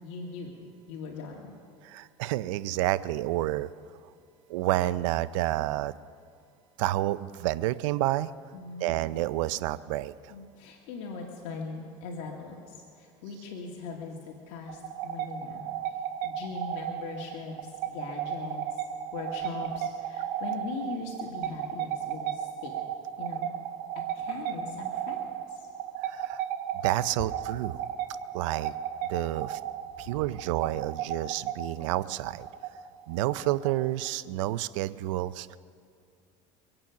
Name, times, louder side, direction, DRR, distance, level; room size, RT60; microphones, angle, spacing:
voice 1, 0.0-0.5 0.9-1.5 8.5-8.9 10.3-15.7 16.2-17.6 17.9-18.6 19.1-22.7 23.2-23.5 24.2-25.6, left 4 dB, 75° left, -1 dB, 2.0 m, -40 dB
voice 2, 1.8-3.7 4.5-5.9 6.8-8.3 8.8-10.1 26.0-26.4 26.8-27.8 28.3-28.7 29.1-29.6 30.0-32.5 33.1-35.6, right 15 dB, 85° right, 17 dB, 0.5 m, -29 dB
sound 1, 14.7-34.1, right 10 dB, 65° right, 1.2 m, -35 dB
24.5 x 8.8 x 5.8 m, 2.4 s
supercardioid pair, 105°, 16 cm